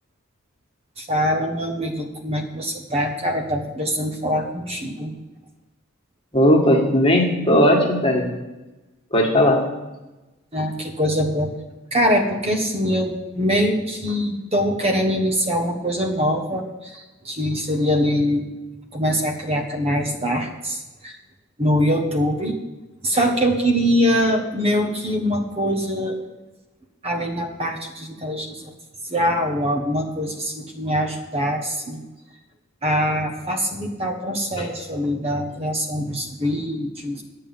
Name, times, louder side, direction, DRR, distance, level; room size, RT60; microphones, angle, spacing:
voice 1, 1.0-5.1 10.5-11.5 11.9-18.5 18.9-21.2 21.6-22.5 23.0-26.2 27.0-28.7 29.0-32.0 32.8-37.2, equal, 30° right, 3 dB, 1.2 m, -23 dB
voice 2, 6.3-8.3 9.1-9.6 34.6-34.7, equal, 25° left, 0 dB, 1.9 m, -17 dB
11.0 x 5.6 x 8.7 m, 1.1 s
head